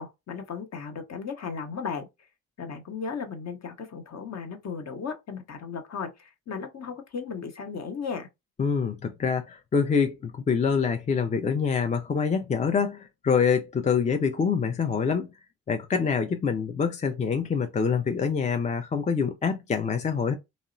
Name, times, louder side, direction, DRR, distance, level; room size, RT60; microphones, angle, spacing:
voice 1, 0.0-2.1 2.6-8.3, left 5 dB, 40° left, 0.8 m, -35 dB
voice 2, 8.6-15.3 15.7-20.3, left 6 dB, 20° left, 0.4 m, -25 dB
2.7 x 2.0 x 2.5 m
hypercardioid pair, 45°, 42 cm